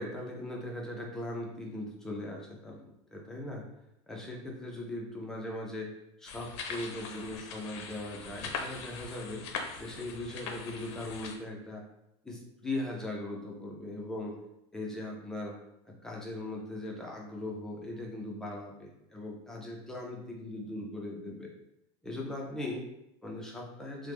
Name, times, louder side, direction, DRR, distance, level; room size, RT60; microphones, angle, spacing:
voice 1, 0.0-2.8 3.1-3.6 4.1-5.9 6.2-9.4 9.8-11.8 12.2-14.4 14.7-15.5 15.9-21.5 22.0-22.9 23.2-24.1, left 1 dB, 5° left, -2 dB, 0.3 m, -39 dB
sound 1, 6.3-11.4, left 5 dB, 65° left, 0.5 m, -41 dB
3.3 x 2.0 x 3.0 m, 0.83 s
supercardioid pair, 170°, 15 cm